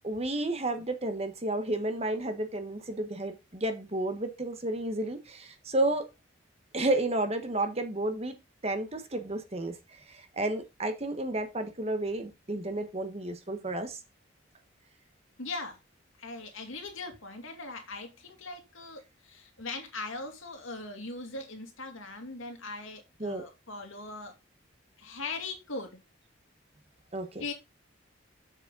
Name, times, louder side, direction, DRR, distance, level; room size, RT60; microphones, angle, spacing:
voice 1, 0.0-6.1 6.7-8.3 8.6-9.8 10.1-14.0 23.2-23.4 27.1-27.4, right 1 dB, 30° right, 1.3 m, -31 dB
voice 2, 15.4-15.8 16.2-24.3 25.0-26.0 27.4-27.5, left 3 dB, 85° left, 2.5 m, -40 dB
7.4 x 6.6 x 3.8 m
head